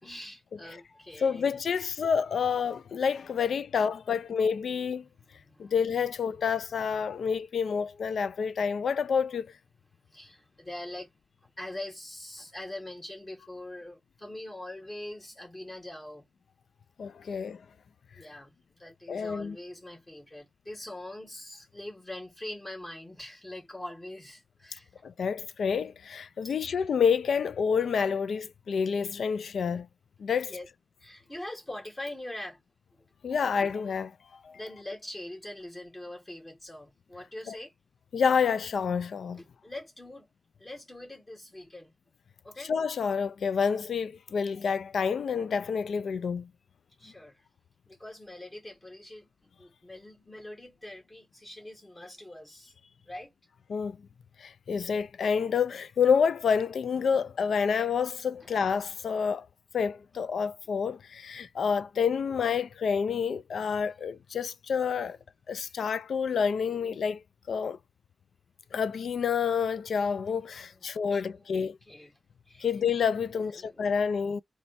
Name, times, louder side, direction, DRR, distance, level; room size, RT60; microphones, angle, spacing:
voice 1, 0.0-1.6 5.0-5.7 6.3-7.3 10.1-11.1 11.4-16.3 17.3-17.4 18.1-24.9 26.4-26.5 30.4-30.7 31.0-32.6 32.9-33.0 34.5-37.7 39.4-40.3 40.6-41.9 42.4-42.7 47.0-47.4 47.9-52.7 53.1-53.3 70.6-70.8 71.1-72.1 72.5-72.7 73.3-73.8, left 1 dB, 20° left, 2.3 m, -43 dB
voice 2, 1.2-5.0 5.6-9.5 17.0-17.6 19.1-19.6 25.0-29.9 30.2-30.5 33.2-34.1 34.4-34.6 37.5-37.6 38.1-39.4 42.7-46.5 53.7-54.0 54.4-59.5 59.7-65.2 65.5-67.8 68.7-71.8 72.6-74.4, left 6 dB, 85° left, 0.3 m, -28 dB
4.0 x 2.2 x 4.1 m
wide cardioid pair, 95°, 0 cm